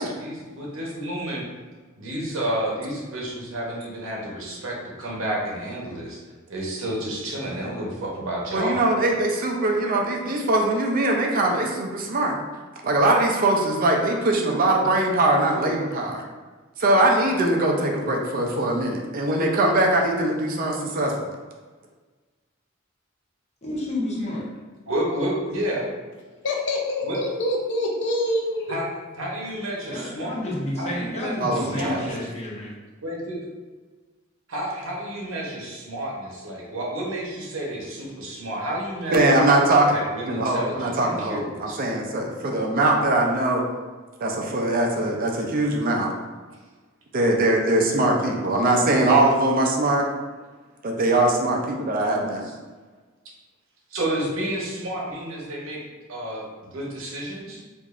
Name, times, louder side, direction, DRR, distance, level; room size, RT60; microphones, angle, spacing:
voice 1, 0.0-1.4 2.0-6.2 6.5-8.8 24.9-25.8 27.0-27.2 28.7-28.9 29.1-30.4 30.8-32.3 33.0-33.5 34.5-39.3 39.9-41.8 52.4-52.5 53.9-55.8 56.1-57.6, right 1 dB, 70° right, -3 dB, 0.9 m, -30 dB
voice 2, 8.5-12.4 12.8-16.2 16.8-21.1 31.4-32.0 39.1-39.9 40.3-43.7 44.2-46.1 47.1-50.1 50.8-52.4, right 2 dB, 45° right, 0 dB, 0.5 m, -21 dB
voice 3, 23.6-24.4 29.9-32.7, left 1 dB, 35° left, -5 dB, 1.0 m, -30 dB
voice 4, 26.4-28.8, left 1 dB, 60° left, 1 dB, 0.6 m, -25 dB
4.7 x 2.6 x 2.5 m, 1.4 s
head